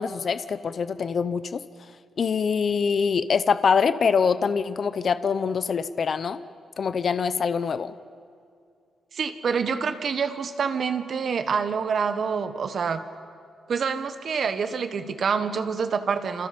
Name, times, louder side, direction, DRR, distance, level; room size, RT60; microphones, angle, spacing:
voice 1, 0.0-1.6 2.2-6.4 6.8-7.9, left 6 dB, 40° left, 13 dB, 0.8 m, -24 dB
voice 2, 9.1-13.0 13.7-16.5, right 6 dB, 45° right, 9 dB, 1.4 m, -26 dB
29.5 x 27.0 x 5.3 m, 2.3 s
wide cardioid pair, 160°, 0 cm